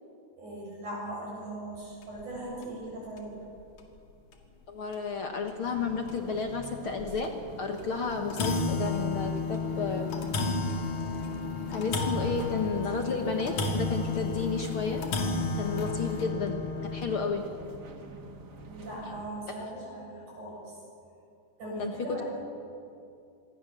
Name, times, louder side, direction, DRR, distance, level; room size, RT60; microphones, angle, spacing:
voice 1, 0.4-3.4 18.7-20.6 21.6-22.2, right 1 dB, 75° right, -4 dB, 9.6 m, -39 dB
sound 1, 2.0-2.2 2.6-2.7 3.2-3.3 4.3-4.4 4.9-5.0 5.5-5.6 6.1-6.2 7.2-7.4 7.8-7.9 8.1-17.2, left 3 dB, 65° left, 3.4 m, -32 dB
voice 2, 4.7-10.1 11.7-15.0 15.6-17.5 19.6-19.7 21.8-22.2, left 5 dB, 50° left, 4 dB, 1.9 m, -32 dB
sound 2, 5.6-19.3, right 2 dB, 40° right, 1.8 m, -46 dB
26.5 x 21.0 x 6.9 m, 2.5 s
omnidirectional pair, 3.5 m